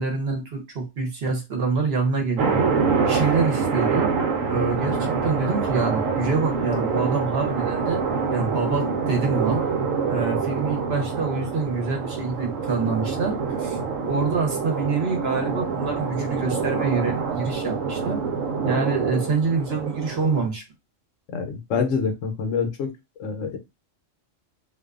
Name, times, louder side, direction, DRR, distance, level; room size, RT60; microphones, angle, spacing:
voice 1, 0.0-2.5 3.0-4.1 4.5-8.0 8.3-9.6 10.1-13.8 14.0-18.2 18.6-20.6, right 4 dB, 55° right, 0.9 m, -26 dB
sound 1, 2.4-20.5, right 5 dB, 85° right, 1.0 m, -26 dB
voice 2, 21.3-22.9 23.2-23.6, left 5 dB, 75° left, 1.0 m, -26 dB
2.5 x 2.3 x 2.3 m
omnidirectional pair, 1.3 m